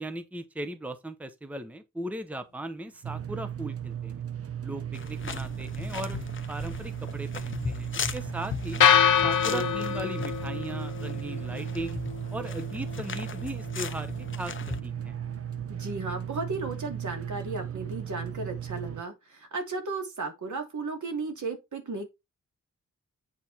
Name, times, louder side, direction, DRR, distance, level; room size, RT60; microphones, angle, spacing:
voice 1, 0.0-4.1 4.6-6.2 6.5-8.8 9.2-12.0 12.3-14.5 14.8-15.2, right 1 dB, 5° right, 0.9 m, -38 dB
sound 1, 3.0-19.0, right 9 dB, 50° right, 0.8 m, -36 dB
sound 2, 4.9-14.8, left 6 dB, 40° left, 0.7 m, -38 dB
sound 3, 8.8-16.9, left 8 dB, 70° left, 0.7 m, -29 dB
voice 2, 9.5-9.9 15.7-22.1, right 3 dB, 70° right, 2.8 m, -35 dB
8.5 x 4.2 x 4.3 m
wide cardioid pair, 125°, 31 cm